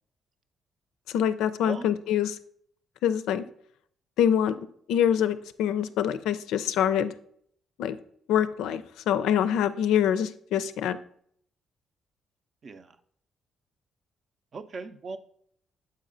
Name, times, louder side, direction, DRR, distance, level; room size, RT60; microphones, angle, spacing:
voice 1, 1.1-2.4 3.0-3.4 4.2-4.6 4.9-7.1 7.8-8.0 8.3-11.0, left 9 dB, 85° left, 13 dB, 0.4 m, -25 dB
voice 2, 12.6-13.0 14.5-15.2, right 3 dB, 50° right, 10 dB, 0.6 m, -38 dB
7.5 x 4.3 x 3.8 m, 0.64 s
cardioid pair, 90°, 0 cm